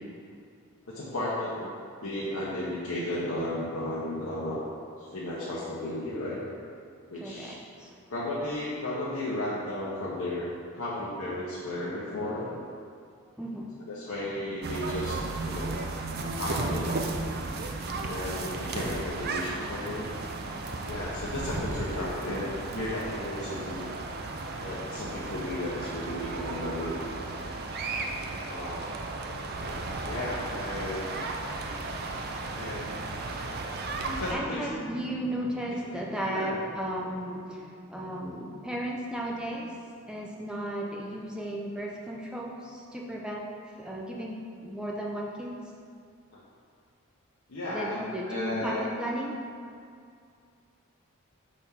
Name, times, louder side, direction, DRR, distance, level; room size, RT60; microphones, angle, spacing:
voice 1, 0.9-1.7 2.0-4.6 5.0-6.4 7.1-7.5 8.1-10.5 10.7-12.6 13.9-15.8 16.3-17.2 18.0-20.1 20.8-23.9 24.6-27.3 28.5-28.9 29.4-31.1 32.5-33.1 34.0-34.7 35.7-35.8 36.3-36.5 46.3-46.4 47.5-48.9, left 1 dB, 75° left, -8 dB, 1.0 m, -34 dB
voice 2, 7.1-8.0 13.4-13.7 34.3-43.5 43.8-45.6 47.7-49.4, right 1 dB, 5° right, -3 dB, 0.6 m, -35 dB
sound 1, 14.6-34.3, right 3 dB, 45° right, 0.5 m, -34 dB
6.3 x 3.6 x 5.7 m, 2.3 s
head